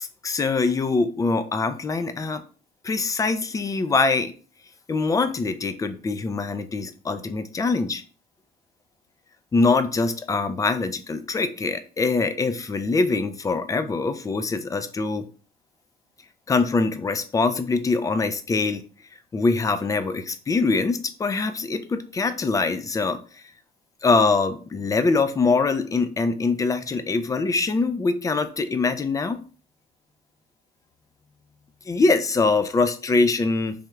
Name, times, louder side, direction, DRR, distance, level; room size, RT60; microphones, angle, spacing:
voice 1, 0.0-2.4 2.8-4.3 4.9-8.0 9.5-15.2 16.5-18.8 19.3-23.4 24.0-29.4 31.9-33.7, left 3 dB, 20° left, 10 dB, 0.4 m, -23 dB
3.4 x 2.3 x 3.0 m, 0.39 s
cardioid pair, 110°, 17 cm